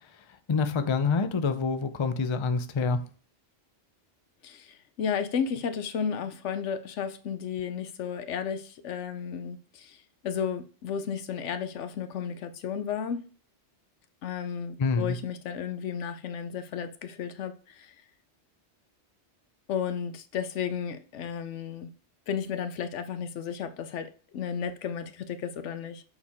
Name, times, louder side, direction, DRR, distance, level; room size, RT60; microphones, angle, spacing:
voice 1, 0.5-3.0 14.8-15.2, left 4 dB, 40° left, 0.4 m, -26 dB
voice 2, 4.4-13.2 14.2-17.9 19.7-21.9 22.3-26.0, left 7 dB, 80° left, 1.0 m, -33 dB
7.0 x 4.4 x 3.5 m
omnidirectional pair, 1.2 m